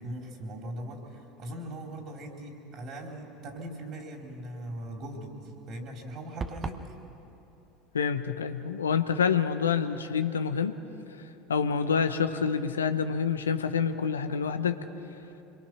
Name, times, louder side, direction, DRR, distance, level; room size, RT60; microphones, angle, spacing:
voice 1, 0.0-7.0, right 1 dB, 50° right, 2 dB, 4.0 m, -40 dB
sound 1, 6.4-6.9, right 4 dB, 30° right, 1.1 m, -35 dB
voice 2, 7.9-10.8 11.5-14.8, left 6 dB, 90° left, 9 dB, 0.9 m, -27 dB
25.5 x 23.0 x 6.3 m, 2.9 s
hypercardioid pair, 75°, 0 cm